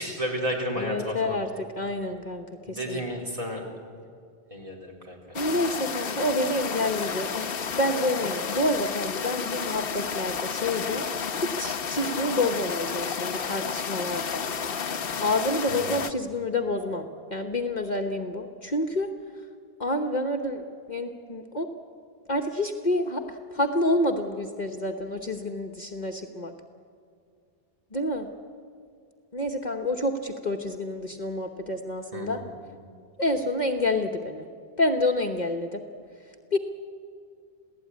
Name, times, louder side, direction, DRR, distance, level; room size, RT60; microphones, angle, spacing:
voice 1, 0.0-1.4 2.7-3.6 4.5-5.4 15.7-15.9 32.1-32.5, equal, 35° right, 0 dB, 3.9 m, -32 dB
voice 2, 0.8-1.5 1.8-3.0 5.3-11.1 11.4-14.5 15.2-19.1 19.8-21.7 22.3-26.5 27.9-28.3 29.3-32.4 33.2-34.5 34.8-35.8 36.5-36.6, left 1 dB, 45° left, 4 dB, 1.3 m, -28 dB
sound 1, 5.3-16.1, left 6 dB, 65° left, 1.1 m, -31 dB
28.0 x 17.0 x 9.5 m, 2.3 s
omnidirectional pair, 1.0 m